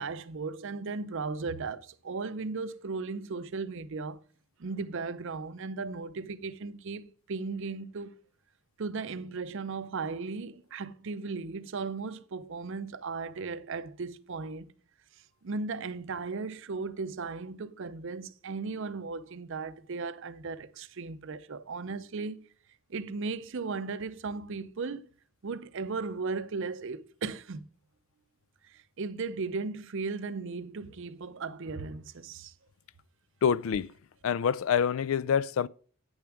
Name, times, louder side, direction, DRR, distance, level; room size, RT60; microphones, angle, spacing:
voice 1, 0.0-4.2 4.6-8.2 8.8-14.7 15.4-22.5 22.9-25.1 25.4-27.7 28.7-32.5, right 4 dB, 60° right, 0.6 m, -36 dB
voice 2, 33.4-33.9 34.2-35.7, left 7 dB, 70° left, 0.3 m, -26 dB
8.9 x 6.9 x 4.7 m
head